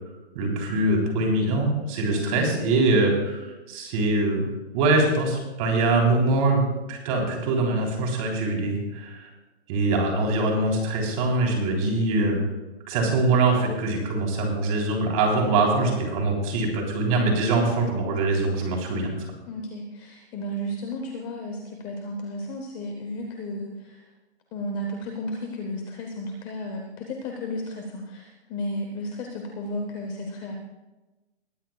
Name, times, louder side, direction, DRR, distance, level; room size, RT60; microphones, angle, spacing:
voice 1, 0.3-4.5 4.7-9.3 9.7-12.4 12.9-19.1, right 2 dB, 30° right, 0 dB, 3.4 m, -23 dB
voice 2, 2.1-2.4 15.4-15.8 19.5-24.0 24.5-30.6, left 1 dB, 10° left, 2 dB, 0.7 m, -33 dB
21.0 x 13.0 x 2.3 m, 1.1 s
hypercardioid pair, 160°, 34 cm